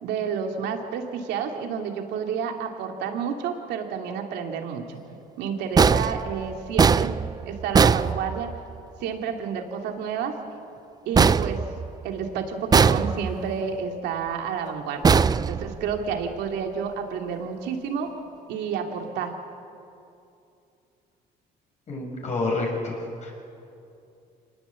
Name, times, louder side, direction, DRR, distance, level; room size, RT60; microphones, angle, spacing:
voice 1, 0.0-5.0 5.4-7.1 7.5-8.5 9.0-10.3 11.0-11.6 12.0-15.2 15.5-18.1 18.5-19.3, right 6 dB, 85° right, 3 dB, 2.9 m, -30 dB
sound 1, 5.8-8.8 11.1-12.2 12.7-13.5 15.0-16.1, right 5 dB, 25° right, 0.5 m, -21 dB
voice 2, 21.9-23.3, left 2 dB, 45° left, 1 dB, 6.4 m, -28 dB
26.0 x 19.5 x 8.6 m, 2.7 s
cardioid pair, 110°, 17 cm